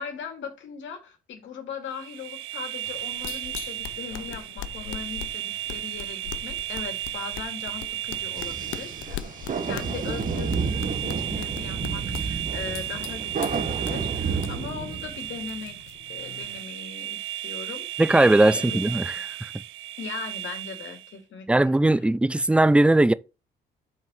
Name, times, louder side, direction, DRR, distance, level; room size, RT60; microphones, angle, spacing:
voice 1, 0.0-17.9 18.2-19.2 20.0-22.1, left 6 dB, 70° left, 2.3 m, -39 dB
sound 1, 1.9-21.1, right 13 dB, 85° right, 0.4 m, -35 dB
sound 2, 2.8-16.6, left 12 dB, 90° left, 0.6 m, -41 dB
sound 3, 8.4-15.5, right 5 dB, 45° right, 1.4 m, -30 dB
voice 2, 18.0-19.0 19.4-19.5 21.5-23.1, right 2 dB, 5° right, 0.4 m, -19 dB
5.8 x 4.6 x 6.2 m
cardioid pair, 90°, 20 cm